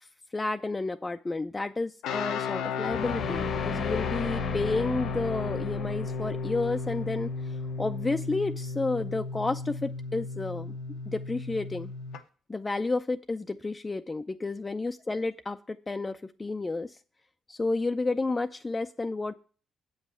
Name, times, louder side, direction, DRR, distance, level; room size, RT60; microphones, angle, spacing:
voice 1, 0.3-10.8 11.1-11.9 12.5-17.0 17.5-19.4, left 3 dB, 20° left, 7 dB, 0.4 m, -31 dB
sound 1, 2.0-12.2, left 4 dB, 90° left, 0.8 m, -34 dB
sound 2, 2.8-7.9, left 5 dB, 55° left, 0.9 m, -36 dB
8.0 x 5.5 x 7.4 m, 0.40 s
cardioid pair, 90°, 0 cm